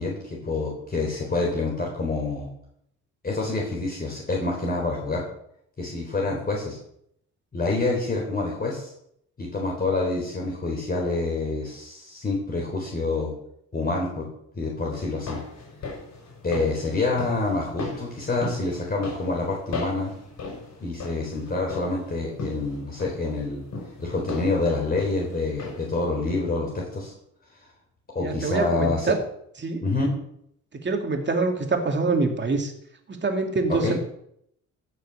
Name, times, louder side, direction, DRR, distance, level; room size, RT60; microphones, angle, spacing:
voice 1, 0.0-2.5 3.2-5.2 5.8-6.8 7.5-8.9 9.4-13.3 13.7-14.3 14.5-15.4 16.4-20.1 20.8-23.6 24.0-27.1 28.1-29.1 29.8-30.2 33.7-33.9, left 3 dB, 30° left, -1 dB, 4.0 m, -27 dB
sound 1, 15.0-26.0 26.3-26.4, left 3 dB, 60° left, 6.2 m, -37 dB
voice 2, 28.2-29.2 29.6-29.8 30.8-32.7 33.1-33.9, right 3 dB, 35° right, 4 dB, 2.8 m, -25 dB
15.5 x 6.5 x 6.8 m, 0.72 s
cardioid pair, 90°, 30 cm